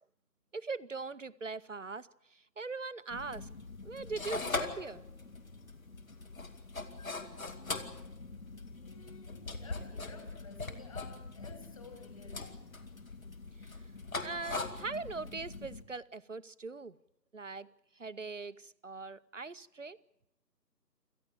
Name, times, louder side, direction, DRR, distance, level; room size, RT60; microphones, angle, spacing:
voice 1, 0.5-3.5 3.8-5.0 13.6-13.7 14.2-17.0 17.3-17.7 18.0-20.0, right 4 dB, 50° right, 15 dB, 0.8 m, -41 dB
sound 1, 3.1-15.8, left 3 dB, 55° left, 2.3 m, -42 dB
voice 2, 8.8-12.5, left 4 dB, 20° left, 5 dB, 2.5 m, -53 dB
27.0 x 14.5 x 9.0 m, 0.87 s
figure-of-eight pair, 165°, 50 cm